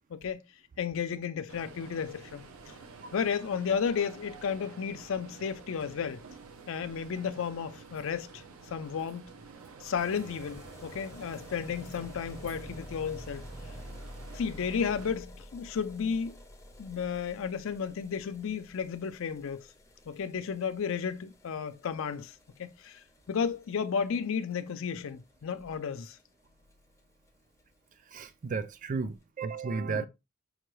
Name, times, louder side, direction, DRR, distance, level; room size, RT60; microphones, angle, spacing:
voice 1, 0.1-0.4 0.8-2.4 3.1-6.2 6.7-8.4 8.7-9.3 9.8-13.4 14.3-16.4 16.8-19.6 20.1-23.0 23.3-26.2 29.9-30.1, left 6 dB, 65° left, 0.4 m, -33 dB
sound 1, 1.5-15.1, right 4 dB, 80° right, 0.6 m, -50 dB
sound 2, 9.9-26.7 27.0-27.1 27.3-27.4 27.6-27.7 27.9-28.0 28.7-28.8, equal, 15° left, 0.5 m, -50 dB
voice 2, 28.1-30.1, right 4 dB, 40° right, 0.4 m, -34 dB
5.6 x 2.2 x 3.0 m
head